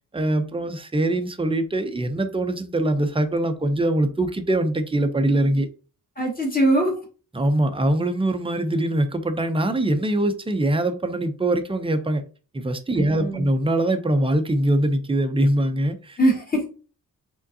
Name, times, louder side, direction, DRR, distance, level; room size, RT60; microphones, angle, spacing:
voice 1, 0.1-5.7 7.3-12.2 12.5-16.2, right 1 dB, 15° right, 0.6 m, -23 dB
voice 2, 6.2-7.0 12.9-13.5 16.2-16.7, right 1 dB, 25° left, 2.1 m, -22 dB
4.9 x 3.7 x 2.7 m
wide cardioid pair, 140°, 34 cm